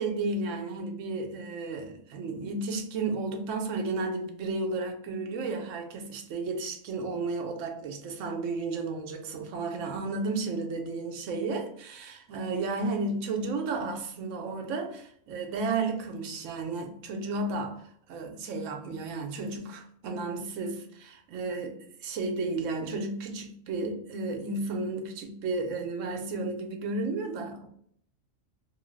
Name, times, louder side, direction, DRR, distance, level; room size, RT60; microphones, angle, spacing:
voice 1, 0.0-17.8 18.1-27.7, right 3 dB, 70° right, 0.9 m, -33 dB
2.5 x 2.3 x 3.0 m
omnidirectional pair, 1.4 m